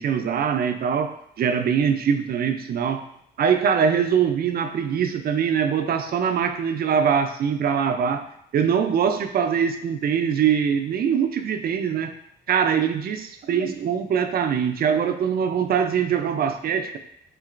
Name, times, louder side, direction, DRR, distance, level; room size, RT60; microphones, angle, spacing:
voice 1, 0.0-3.0 3.4-8.3 8.5-12.1 12.5-17.0, right 7 dB, 50° right, 7 dB, 0.4 m, -23 dB
4.4 x 2.8 x 2.5 m, 0.71 s
cardioid pair, 90°, 20 cm